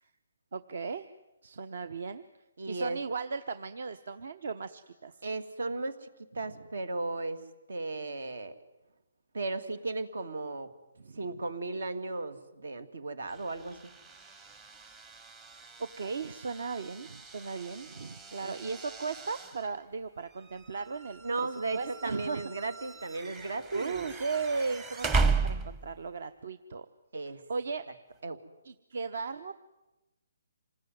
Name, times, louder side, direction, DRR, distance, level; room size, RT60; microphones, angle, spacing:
voice 1, 0.5-1.0 1.4-2.2 2.7-5.2 11.0-11.2 15.8-21.5 21.7-22.5 23.7-26.9 27.5-27.8 28.6-29.5, right 4 dB, 60° right, 13 dB, 1.0 m, -36 dB
voice 2, 2.6-3.0 5.2-6.1 6.3-7.4 7.7-8.6 9.3-10.7 11.2-13.8 18.4-18.5 21.2-24.1 27.1-27.4 28.2-28.4, right 3 dB, 80° right, 12 dB, 2.5 m, -35 dB
sound 1, 13.3-26.1, right 4 dB, 15° right, 0.9 m, -36 dB
27.0 x 19.5 x 9.4 m, 1.0 s
hypercardioid pair, 170°, 0 cm